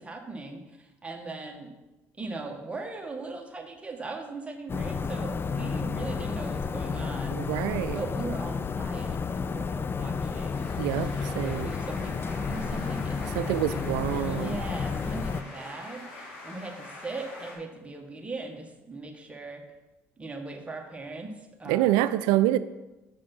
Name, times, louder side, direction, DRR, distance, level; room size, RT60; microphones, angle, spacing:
voice 1, 0.0-1.7 2.2-7.4 7.9-19.6 20.2-21.3 21.6-21.9, right 3 dB, 15° right, 2 dB, 1.5 m, -39 dB
sound 1, 4.7-15.4, left 5 dB, 30° left, 0.4 m, -31 dB
voice 2, 7.3-8.0 10.8-11.7 13.3-14.7 21.7-22.6, right 14 dB, 75° right, 14 dB, 0.4 m, -26 dB
sound 2, 10.1-17.5, left 2 dB, 85° left, 2.1 m, -45 dB
7.1 x 5.1 x 5.4 m, 1.0 s
hypercardioid pair, 65°, 7 cm